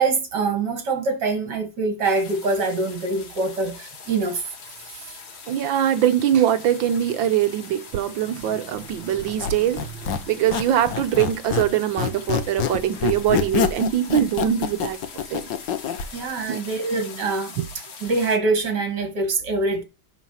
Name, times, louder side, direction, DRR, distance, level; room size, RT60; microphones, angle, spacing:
voice 1, 0.0-4.4 4.9-5.2 14.1-14.2 16.1-17.5 18.0-19.8, right 3 dB, 60° right, 2.8 m, -24 dB
sound 1, 2.0-18.4, left 5 dB, 85° left, 2.5 m, -42 dB
voice 2, 5.5-15.0 15.3-15.4 16.5-16.6 17.6-17.7, right 10 dB, 75° right, 1.5 m, -22 dB
Squeak, 9.2-11.7 12.0-16.1, left 7 dB, 70° left, 1.7 m, -26 dB
11.0 x 4.1 x 5.6 m
omnidirectional pair, 2.1 m